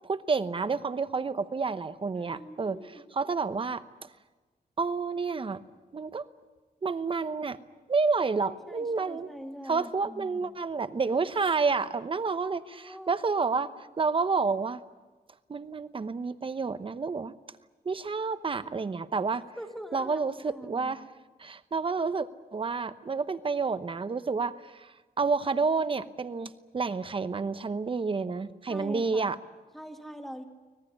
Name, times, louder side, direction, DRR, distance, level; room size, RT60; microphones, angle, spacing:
voice 1, 0.0-2.8 3.1-4.1 4.8-5.6 5.9-6.2 6.8-7.6 7.9-9.3 9.7-14.8 15.5-17.3 17.8-19.4 19.9-21.1 21.4-29.4, right 4 dB, 30° right, 12 dB, 0.9 m, -29 dB
voice 2, 2.1-3.0 8.4-10.5 12.2-13.2 19.6-21.0 28.7-29.3 29.7-30.4, equal, ahead, 4 dB, 2.1 m, -44 dB
25.0 x 19.0 x 9.9 m, 1.3 s
wide cardioid pair, 155°, 16 cm